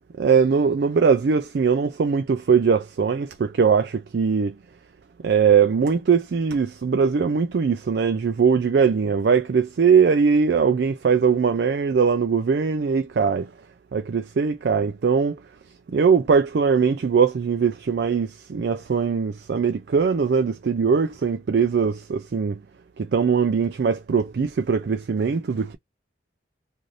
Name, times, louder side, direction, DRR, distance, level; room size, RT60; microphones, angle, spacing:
voice 1, 0.2-4.6 5.2-13.5 13.9-15.4 15.9-22.6 23.0-25.8, right 6 dB, 55° right, 0.4 m, -21 dB
2.6 x 2.5 x 3.1 m
head